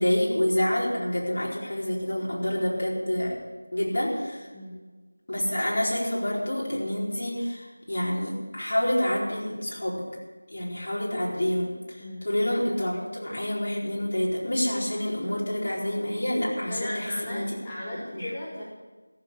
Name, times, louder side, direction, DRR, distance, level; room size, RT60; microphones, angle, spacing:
voice 1, 0.0-3.4 3.7-4.5 5.3-10.1 10.5-17.5 17.9-18.3, left 1 dB, 50° left, -5 dB, 4.4 m, -28 dB
voice 2, 16.7-18.6, left 1 dB, 10° left, -7 dB, 1.0 m, -36 dB
14.5 x 7.5 x 8.4 m, 1.3 s
figure-of-eight pair, 175°, 0 cm